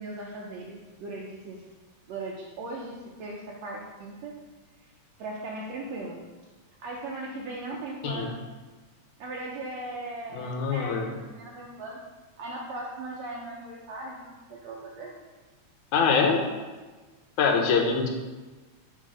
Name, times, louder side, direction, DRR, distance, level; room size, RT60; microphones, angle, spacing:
voice 1, 0.0-1.6 2.1-4.4 5.2-6.2 6.8-8.4 9.2-12.0 12.4-15.1, right 2 dB, 75° right, -3 dB, 1.7 m, -38 dB
voice 2, 10.3-11.1 15.9-16.4 17.4-18.1, left 5 dB, 80° left, 3 dB, 2.2 m, -24 dB
6.7 x 4.0 x 5.0 m, 1.3 s
omnidirectional pair, 3.5 m